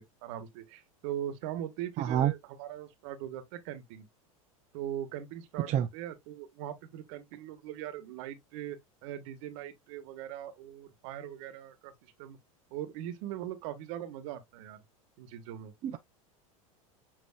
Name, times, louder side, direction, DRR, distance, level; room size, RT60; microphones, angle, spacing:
voice 1, 0.0-4.1 4.7-12.4 12.7-14.8 15.2-15.7, right 11 dB, 60° right, 1.3 m, -40 dB
voice 2, 2.0-2.3 5.7-5.9 15.8-16.0, right 10 dB, 40° right, 0.6 m, -27 dB
7.3 x 2.9 x 2.3 m
hypercardioid pair, 95°, 18 cm